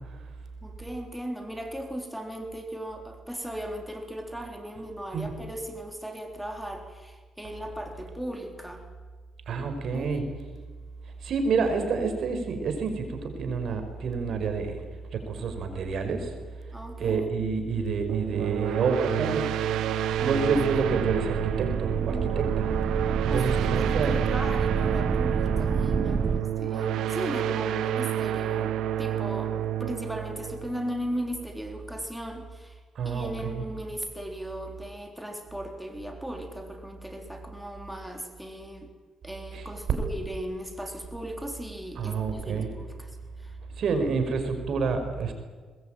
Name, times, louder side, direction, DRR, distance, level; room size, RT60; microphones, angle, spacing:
voice 1, 0.6-8.8 9.9-10.1 16.7-17.3 20.2-20.6 22.0-22.4 23.3-29.5 29.8-38.9 39.2-43.6, equal, 5° right, 3 dB, 3.8 m, -37 dB
voice 2, 9.5-10.3 11.2-14.8 15.1-16.3 16.9-19.6 20.2-22.6 23.2-24.1 32.9-33.6 39.5-39.7 42.0-42.7 43.8-45.3, right 5 dB, 65° right, 7 dB, 5.1 m, -28 dB
sound 1, 18.1-31.4, right 11 dB, 80° right, 1.2 m, -29 dB
sound 2, 20.1-26.4, right 4 dB, 35° right, 0.9 m, -29 dB
21.5 x 21.5 x 9.2 m, 1.5 s
cardioid pair, 90°, 0 cm